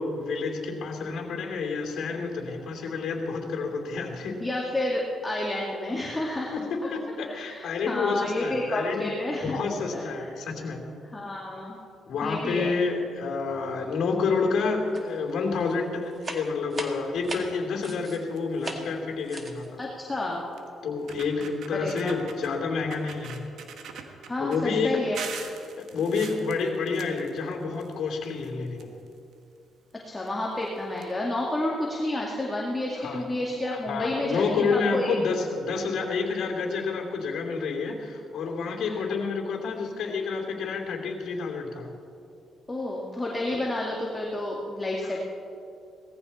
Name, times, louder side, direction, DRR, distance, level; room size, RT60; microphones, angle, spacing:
voice 1, 0.0-4.4 6.5-6.6 6.9-9.1 9.4-10.8 12.1-19.8 20.8-23.4 24.4-25.0 25.8-28.9 33.0-33.2 33.7-41.9 43.5-43.6 45.0-45.2, left 4 dB, 70° left, 1 dB, 2.9 m, -29 dB
voice 2, 4.4-6.5 7.2-9.6 9.9-10.3 11.1-11.8 12.2-12.8 19.8-20.5 21.8-22.2 24.2-25.2 30.0-35.2 38.8-39.1 42.7-45.2, left 1 dB, 15° left, -3 dB, 2.1 m, -30 dB
sound 1, 14.9-15.3 15.6-18.2 18.6-18.9 19.2-19.7, right 2 dB, 30° right, 1.8 m, -38 dB
sound 2, 17.1-17.5 18.0-18.1 18.4-18.6 19.8-19.9 20.6-20.7 21.0-22.5 22.9-24.6 25.1-27.9 28.2-29.3 30.2-30.3 30.6-30.7 31.0-31.1, right 6 dB, 70° right, 1.5 m, -42 dB
18.5 x 14.5 x 4.3 m, 2.6 s
cardioid pair, 90°, 0 cm